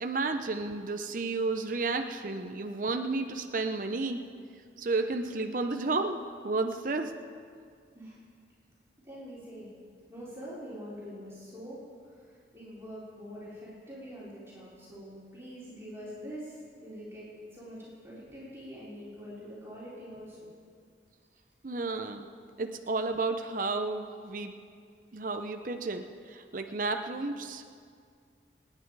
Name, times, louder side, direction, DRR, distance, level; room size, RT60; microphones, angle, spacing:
voice 1, 0.0-4.2 4.8-6.2 6.4-7.1 21.6-22.3 22.6-24.5 25.1-27.7, right 3 dB, 45° right, 6 dB, 0.7 m, -32 dB
voice 2, 9.0-9.7 10.1-11.8 12.5-17.3 17.5-20.4, equal, 15° right, -9 dB, 4.0 m, -44 dB
28.5 x 9.7 x 4.8 m, 2.2 s
head